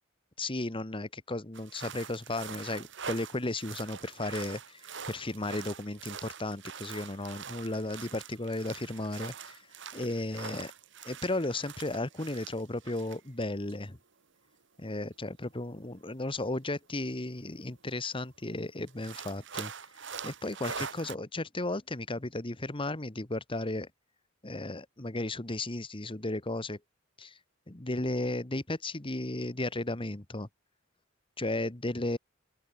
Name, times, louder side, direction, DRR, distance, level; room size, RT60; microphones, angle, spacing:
voice 1, 0.4-4.8 5.1-9.6 9.9-10.7 11.0-14.0 14.8-19.7 20.2-23.9 24.4-26.8 27.2-27.3 27.7-30.5 31.4-32.2, left 2 dB, 25° left, 1.5 m, -34 dB
sound 1, 1.5-13.4 13.7-13.8 14.9-15.0 17.1-17.2 17.6-17.7 18.0-18.1 18.9-21.1, right 6 dB, 65° right, 4.1 m, -44 dB
open air
head